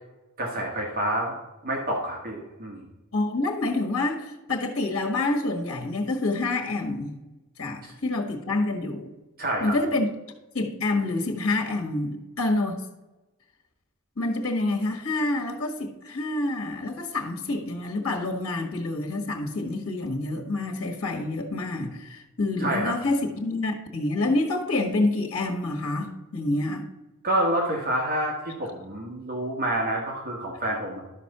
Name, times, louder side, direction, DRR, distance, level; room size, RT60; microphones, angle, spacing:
voice 1, 0.4-1.3 1.6-2.8 7.8-7.9 9.4-9.7 22.6-22.9 27.2-28.3 28.6-31.0, right 1 dB, 45° right, -2 dB, 1.7 m, -28 dB
voice 2, 3.1-7.1 7.6-9.1 9.6-10.1 10.5-12.8 14.2-26.9, left 2 dB, 70° left, 1 dB, 1.5 m, -27 dB
12.0 x 4.2 x 6.7 m, 1.1 s
head